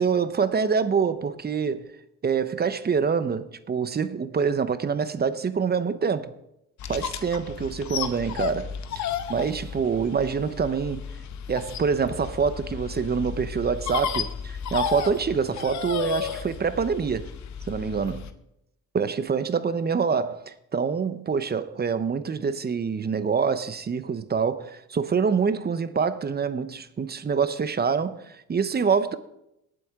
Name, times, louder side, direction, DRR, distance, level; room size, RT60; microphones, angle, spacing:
voice 1, 0.0-1.9 2.2-6.3 6.9-8.7 9.0-9.1 9.3-11.0 11.5-17.3 17.7-18.2 18.9-29.2, right 6 dB, 35° right, 0.9 m, -26 dB
sound 1, 6.8-18.3, left 8 dB, 65° left, 0.9 m, -33 dB
19.0 x 7.9 x 3.7 m
cardioid pair, 90°, 30 cm